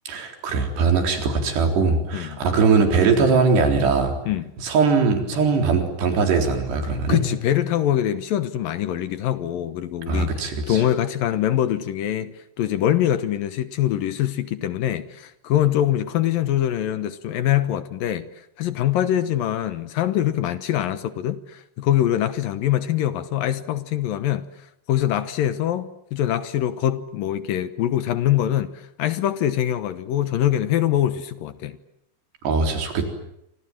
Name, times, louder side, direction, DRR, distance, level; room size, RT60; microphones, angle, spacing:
voice 1, 0.1-4.1 4.6-7.2 10.1-10.8 32.4-33.0, right 4 dB, 85° right, 6.1 m, -20 dB
voice 2, 2.1-2.4 4.3-4.5 7.1-18.3 18.6-24.4 24.9-31.8, left 11 dB, 70° left, 2.5 m, -23 dB
28.5 x 26.0 x 7.6 m
omnidirectional pair, 4.7 m